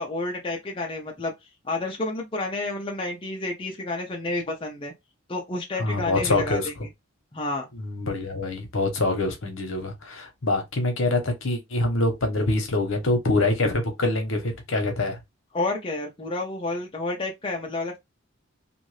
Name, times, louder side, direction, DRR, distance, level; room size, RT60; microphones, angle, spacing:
voice 1, 0.0-1.3 1.6-4.9 5.3-6.6 7.3-7.7 15.5-18.0, left 2 dB, 25° left, 0.6 m, -30 dB
voice 2, 5.8-6.7 7.7-15.2, left 2 dB, 70° left, 1.0 m, -25 dB
2.7 x 2.5 x 3.2 m
head